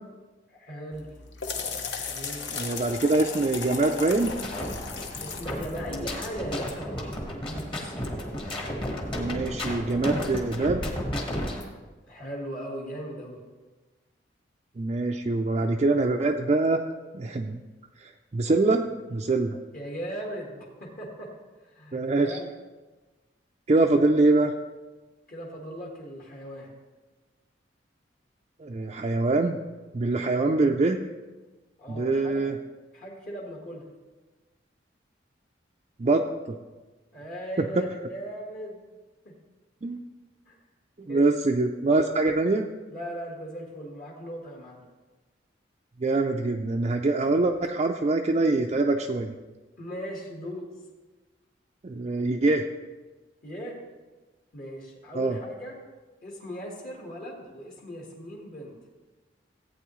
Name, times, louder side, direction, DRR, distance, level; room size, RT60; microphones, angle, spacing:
voice 1, 0.5-1.1 2.0-2.5 5.2-8.0 12.0-13.4 19.7-21.3 21.6-22.5 25.3-26.7 31.8-32.5 32.9-33.9 37.1-38.8 39.3-39.4 40.5-40.6 41.1-41.3 42.9-44.8 47.0-47.2 49.8-50.7 53.4-53.8 54.5-55.7 56.2-58.8, equal, 50° left, -3 dB, 1.7 m, -38 dB
sound 1, 0.9-6.5, left 5 dB, 65° left, 1.0 m, -36 dB
voice 2, 2.5-4.5 9.1-10.8 14.8-16.8 17.1-17.6 18.0-18.8 19.1-19.6 21.9-22.4 23.7-24.5 28.6-29.6 29.9-31.0 31.9-32.6 36.0-36.6 37.8-37.9 39.8-40.0 41.0-42.7 46.0-49.3 51.8-52.7 55.1-55.4, right 2 dB, 35° right, 1 dB, 0.4 m, -24 dB
sound 2, 4.2-11.7, equal, 30° left, 1.3 m, -33 dB
15.0 x 8.7 x 3.1 m, 1.2 s
head